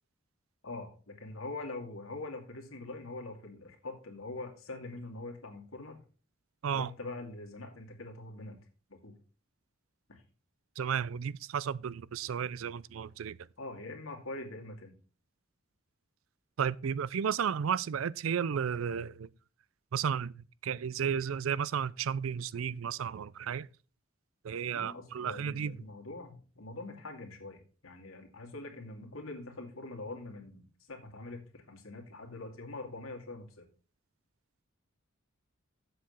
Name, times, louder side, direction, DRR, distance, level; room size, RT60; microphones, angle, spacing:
voice 1, 0.6-6.0 6.7-8.6 8.9-9.1 10.1-10.2 13.6-14.9 24.7-33.6, left 2 dB, 85° left, 2.3 m, -44 dB
voice 2, 10.8-13.4 16.6-19.3 19.9-23.7 24.4-25.8, right 7 dB, 70° right, 0.4 m, -33 dB
7.7 x 6.8 x 5.5 m
head